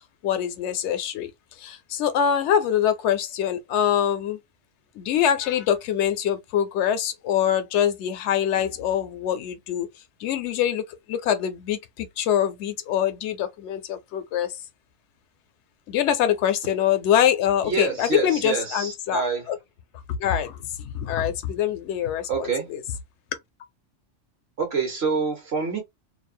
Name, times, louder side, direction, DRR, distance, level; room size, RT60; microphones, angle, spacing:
voice 1, 0.2-1.3 1.6-4.4 5.0-9.9 10.2-14.6 15.9-19.6 20.2-22.8, left 9 dB, 70° left, 0.8 m, -24 dB
voice 2, 17.6-19.5 22.3-22.7 24.6-25.8, right 5 dB, 60° right, 1.0 m, -27 dB
2.6 x 2.0 x 2.4 m
omnidirectional pair, 1.3 m